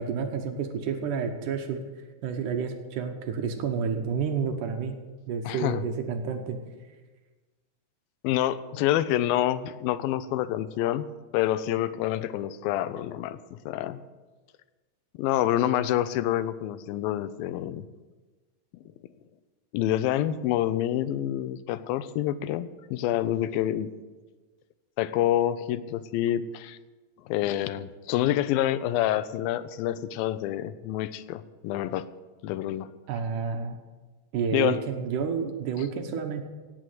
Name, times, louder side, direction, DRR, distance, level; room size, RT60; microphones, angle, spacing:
voice 1, 0.0-1.8 2.2-5.0 5.3-6.6 33.1-33.8 34.3-36.4, right 6 dB, 70° right, 5 dB, 2.3 m, -30 dB
voice 2, 5.5-5.8 8.2-11.1 11.3-14.0 15.2-17.8 19.7-23.9 25.0-26.8 27.3-32.1 32.4-32.9 34.5-34.8, left 12 dB, 90° left, 14 dB, 2.4 m, -27 dB
17.5 x 6.3 x 7.8 m, 1.3 s
omnidirectional pair, 4.1 m